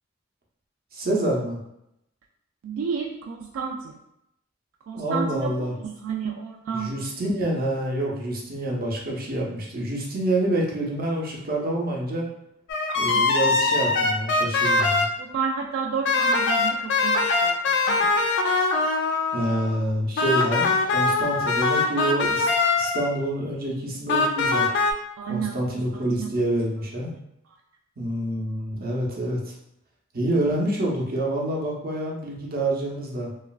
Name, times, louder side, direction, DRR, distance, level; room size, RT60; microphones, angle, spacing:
voice 1, 0.9-1.6 4.9-5.7 6.7-12.2 12.9-15.1 19.3-22.5 22.8-24.7 25.3-27.1 28.0-29.4 30.1-33.3, right 1 dB, 50° right, -2 dB, 0.7 m, -27 dB
voice 2, 2.6-3.9 4.9-7.0 13.1-13.3 15.2-18.3 25.2-26.3 27.5-27.6, right 6 dB, 80° right, 2 dB, 0.3 m, -31 dB
sound 1, 12.7-15.1 16.0-19.8 20.2-23.2 24.1-24.9, left 3 dB, 60° left, 0.3 m, -22 dB
3.0 x 2.4 x 2.3 m, 0.81 s
head